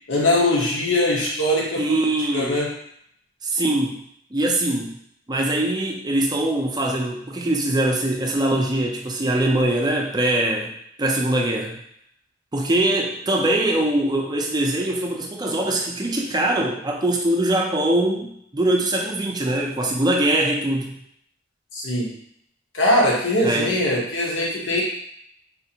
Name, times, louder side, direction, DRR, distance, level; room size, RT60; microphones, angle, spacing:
voice 1, 0.1-2.0 2.3-2.7 21.7-22.1 22.7-24.8, left 1 dB, 75° left, -4 dB, 1.0 m, -21 dB
voice 2, 1.8-2.6 3.4-4.0 4.3-5.0 5.3-10.7 11.0-11.8 12.5-21.0 23.4-23.7, right 1 dB, 20° right, 0 dB, 0.5 m, -22 dB
4.2 x 2.5 x 2.8 m, 0.70 s
head